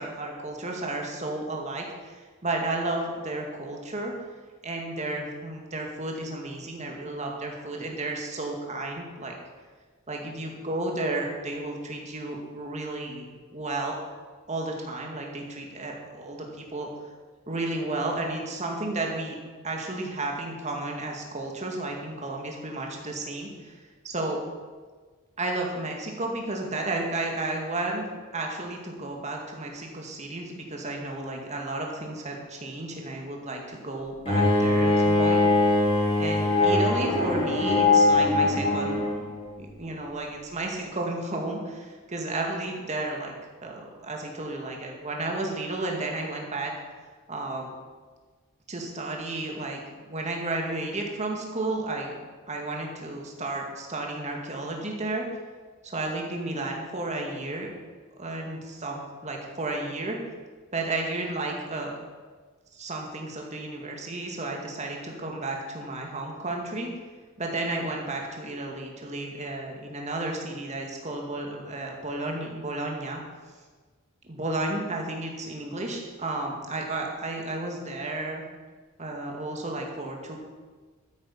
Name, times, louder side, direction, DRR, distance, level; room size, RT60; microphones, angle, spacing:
voice 1, 0.0-4.1 4.6-9.4 10.1-13.3 13.5-14.0 14.5-16.9 17.5-19.4 19.6-23.8 24.0-24.4 25.4-28.1 28.3-35.4 36.2-39.0 39.6-43.3 43.6-46.7 47.3-47.7 48.7-49.8 50.1-52.1 52.5-55.2 55.8-57.7 58.2-60.2 60.7-61.9 62.7-66.9 67.4-73.2 74.2-78.4 79.0-80.4, right 2 dB, 30° right, 1 dB, 2.1 m, -32 dB
Bowed string instrument, 34.2-39.3, left 2 dB, 25° left, 4.2 m, -22 dB
13.0 x 9.4 x 5.5 m, 1.4 s
head